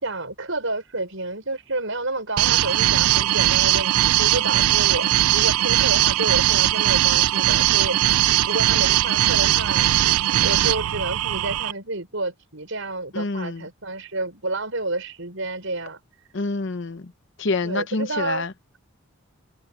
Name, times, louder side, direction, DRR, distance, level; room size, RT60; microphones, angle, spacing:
voice 1, 0.0-9.9 10.4-16.0 17.6-18.5, right 2 dB, 60° right, 6.0 m, -30 dB
sound 1, 2.4-11.7, right 14 dB, 85° right, 0.4 m, -19 dB
voice 2, 13.1-13.6 16.3-17.1 17.4-18.8, left 3 dB, 55° left, 0.7 m, -27 dB
head